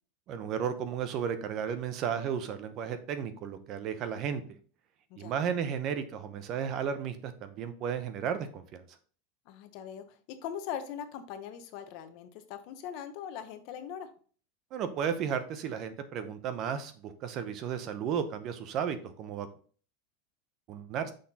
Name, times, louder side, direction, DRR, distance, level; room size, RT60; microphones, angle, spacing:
voice 1, 0.3-4.6 5.2-8.8 14.7-19.5 20.7-21.1, right 7 dB, 35° right, 10 dB, 0.8 m, -34 dB
voice 2, 9.5-14.1, left 9 dB, 45° left, 9 dB, 0.9 m, -41 dB
6.4 x 5.7 x 2.8 m, 0.42 s
supercardioid pair, 160°, 0 cm